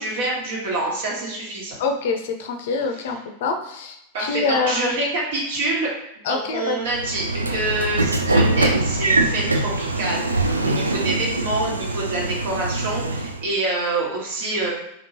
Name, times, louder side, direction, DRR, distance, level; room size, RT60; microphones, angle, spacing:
voice 1, 0.0-1.8 4.1-5.9 6.1-14.7, right 2 dB, 55° right, -3 dB, 1.4 m, -26 dB
voice 2, 1.8-4.9 6.2-6.8, left 4 dB, 55° left, 5 dB, 0.5 m, -25 dB
Train / Sliding door, 6.9-13.4, right 2 dB, 80° right, 0.3 m, -23 dB
3.6 x 3.5 x 2.8 m, 0.82 s
figure-of-eight pair, 90°, 0 cm